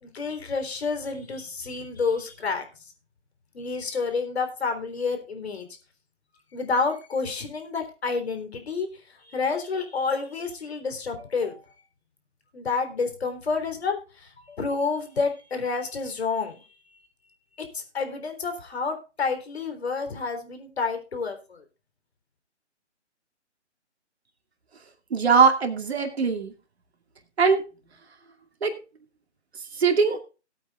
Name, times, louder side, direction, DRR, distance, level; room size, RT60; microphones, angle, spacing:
voice 1, 0.0-2.6 3.5-5.7 6.5-8.9 9.2-11.6 12.5-16.7 17.6-21.6, left 4 dB, 60° left, 6 dB, 3.7 m, -29 dB
voice 2, 25.1-26.5 27.4-27.6 28.6-28.8 29.7-30.2, right 5 dB, 60° right, 5 dB, 2.5 m, -21 dB
19.0 x 8.5 x 2.4 m, 0.32 s
figure-of-eight pair, 150°, 36 cm